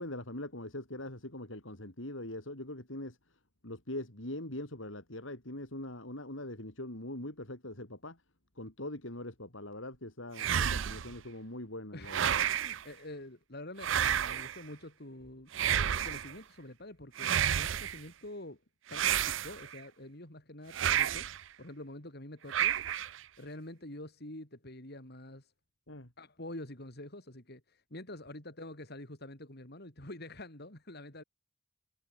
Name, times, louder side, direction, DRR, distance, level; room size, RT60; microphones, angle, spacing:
voice 1, 0.0-3.2 3.6-8.2 8.6-12.3 25.9-26.1, left 1 dB, 70° left, 5.4 m, -42 dB
sound 1, 10.4-11.2 12.1-12.8 13.8-14.6 15.5-16.3 17.2-18.0 18.9-19.8 20.7-21.4 22.5-23.2, right 9 dB, 70° right, 0.5 m, -30 dB
voice 2, 11.9-15.5 15.9-18.6 18.9-21.3 21.6-22.8 23.4-25.5 26.2-31.2, left 1 dB, 55° left, 4.8 m, -47 dB
head